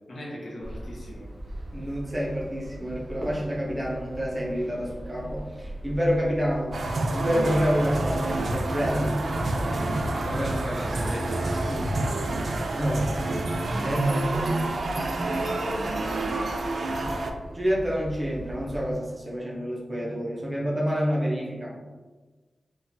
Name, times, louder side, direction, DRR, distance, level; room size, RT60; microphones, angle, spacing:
voice 1, 0.1-1.3 10.1-12.3 15.8-16.4, equal, 50° left, -4 dB, 0.8 m, -37 dB
sound 1, 0.6-18.9, right 1 dB, 35° right, 1.0 m, -40 dB
voice 2, 1.7-6.8 7.1-9.2 12.7-14.7 17.5-21.7, equal, 15° right, -5 dB, 0.6 m, -28 dB
sound 2, 6.7-17.3, right 2 dB, 55° right, 0.3 m, -28 dB
3.8 x 2.3 x 2.6 m, 1.3 s
wide cardioid pair, 170°, 0 cm